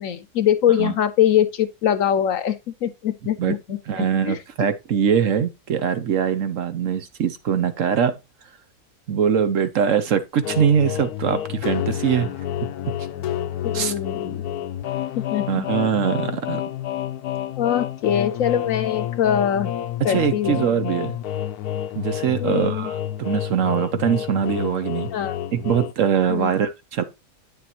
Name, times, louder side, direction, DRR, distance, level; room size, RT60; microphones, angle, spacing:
voice 1, 0.0-4.4 13.6-14.5 15.2-15.7 17.6-19.7 20.0-20.7 22.4-22.9 25.1-25.4 26.3-26.5, left 10 dB, 65° left, 1.1 m, -23 dB
voice 2, 3.9-8.1 9.1-12.3 13.7-13.9 15.5-16.6 20.0-21.2 21.9-25.1 25.5-27.0, right 8 dB, 65° right, 1.1 m, -22 dB
sound 1, 10.4-25.9, left 11 dB, 80° left, 1.2 m, -29 dB
9.2 x 6.8 x 2.9 m
omnidirectional pair, 1.6 m